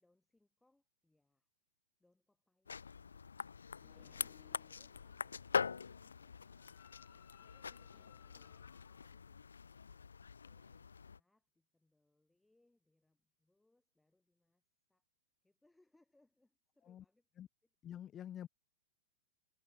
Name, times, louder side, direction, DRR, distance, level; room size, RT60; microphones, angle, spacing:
voice 1, 0.0-1.5 2.0-10.1 10.4-14.6 14.9-15.0 15.4-17.3, left 2 dB, 5° left, 6.5 m, -77 dB
sound 1, 2.7-11.2, left 6 dB, 75° left, 0.5 m, -44 dB
sound 2, 3.8-9.8, left 40 dB or more, 45° left, 1.1 m, -66 dB
voice 2, 17.8-18.5, left 10 dB, 25° left, 0.7 m, -47 dB
figure-of-eight pair, 100°, 0 cm